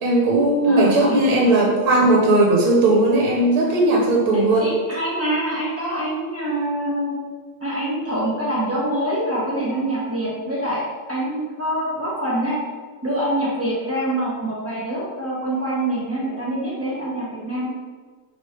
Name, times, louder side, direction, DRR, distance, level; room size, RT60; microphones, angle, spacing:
voice 1, 0.0-4.6, right 2 dB, 80° right, -2 dB, 1.3 m, -17 dB
voice 2, 0.6-1.2 1.4-1.5 4.6-7.2 7.6-10.8 11.1-12.6 13.0-17.7, right 1 dB, 10° right, -8 dB, 0.8 m, -25 dB
3.1 x 3.0 x 4.3 m, 1.5 s
omnidirectional pair, 1.6 m